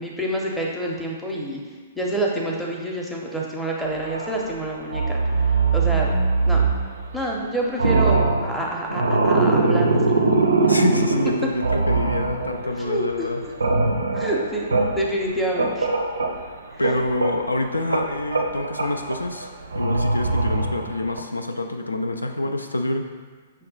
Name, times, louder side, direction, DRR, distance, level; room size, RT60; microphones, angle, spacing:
voice 1, 0.0-1.6 2.0-5.2 5.7-6.2 6.4-6.7 7.1-10.1 12.8-13.3 14.1-14.7 14.9-15.9, right 1 dB, ahead, -3 dB, 0.6 m, -27 dB
sound 1, 3.9-4.6 4.9-7.4 7.7-12.8 13.1-16.5 16.8-21.2, right 3 dB, 70° right, 0.4 m, -22 dB
voice 2, 10.7-13.4 16.8-23.1, left 2 dB, 80° left, 5 dB, 0.3 m, -26 dB
5.8 x 2.2 x 3.8 m, 1.5 s
figure-of-eight pair, 115°, 0 cm